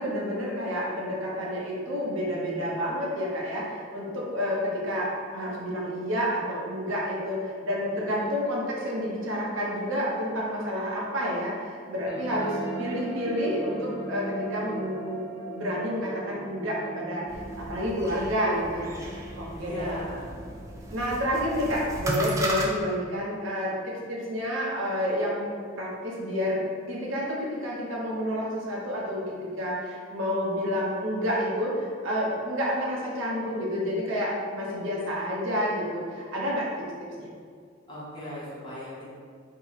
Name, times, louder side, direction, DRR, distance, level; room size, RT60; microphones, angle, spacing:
voice 1, 0.0-20.0 20.9-36.7 37.2-37.3, equal, 75° right, -4 dB, 0.7 m, -29 dB
sound 1, 12.1-23.1, right 3 dB, 85° left, 0.6 m, -40 dB
sound 2, 17.3-22.7, right 1 dB, 15° right, 0.3 m, -35 dB
voice 2, 19.5-20.4 37.9-39.1, equal, 25° left, -8 dB, 0.8 m, -38 dB
2.7 x 2.0 x 3.9 m, 2.1 s
head